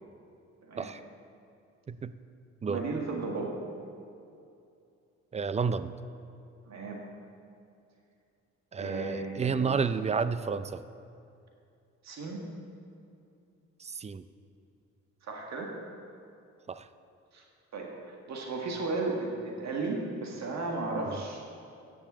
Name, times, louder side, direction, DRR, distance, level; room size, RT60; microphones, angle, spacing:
voice 1, 2.6-3.5 6.7-7.0 8.8-9.8 12.0-12.4 15.2-15.7 17.3-17.4 17.7-21.4, right 3 dB, 60° right, 0 dB, 1.8 m, -35 dB
voice 2, 5.3-5.9 8.7-10.8 13.8-14.2 16.7-16.9 21.1-21.2, right 5 dB, 20° right, 13 dB, 0.4 m, -31 dB
10.0 x 7.1 x 7.4 m, 2.6 s
cardioid pair, 90°, 30 cm